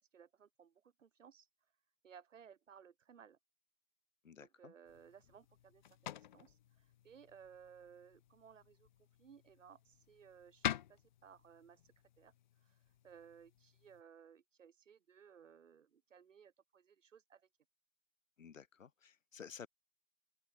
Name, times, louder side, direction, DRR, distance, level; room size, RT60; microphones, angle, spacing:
voice 1, 0.0-1.5 2.0-3.4 4.4-17.5, right 7 dB, 60° right, 4.8 m, -61 dB
voice 2, 4.2-4.7 18.4-19.7, left 7 dB, 65° left, 4.3 m, -53 dB
sound 1, 4.8-14.0, left 11 dB, 35° left, 1.2 m, -48 dB
open air
hypercardioid pair, 155°, 41 cm